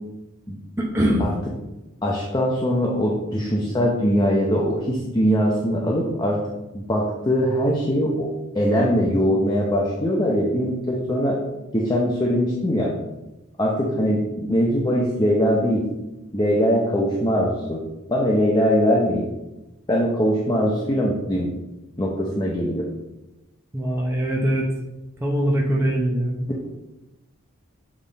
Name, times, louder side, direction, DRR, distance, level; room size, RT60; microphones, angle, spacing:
voice 1, 0.8-1.2 23.7-24.7 25.2-26.4, right 1 dB, 10° right, -3 dB, 0.8 m, -22 dB
voice 2, 2.0-6.4 6.7-11.4 11.7-12.9 13.6-15.8 16.3-17.8 18.1-19.3 19.9-21.5 22.0-22.9, equal, 20° left, -3 dB, 0.7 m, -21 dB
7.3 x 3.6 x 4.1 m, 0.99 s
head